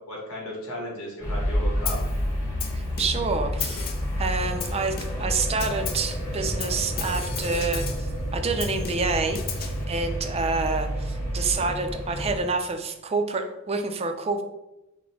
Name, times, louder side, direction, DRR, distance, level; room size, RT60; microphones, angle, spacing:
voice 1, 0.1-2.0 11.4-11.6, equal, 80° left, -2 dB, 1.3 m, -35 dB
sound 1, 1.2-12.4, left 1 dB, 15° left, 0.9 m, -31 dB
Snare drum, 1.8-2.2 2.6-3.3 3.6-4.2 4.6-5.3 5.6-6.1 6.6-8.1 8.6-9.8, left 7 dB, 45° left, 0.5 m, -35 dB
voice 2, 2.7-3.9 4.2-14.4, right 4 dB, 30° right, 6 dB, 0.4 m, -28 dB
sound 2, 6.0-11.8, right 1 dB, 80° right, 0.9 m, -32 dB
6.0 x 2.1 x 3.3 m, 0.92 s
head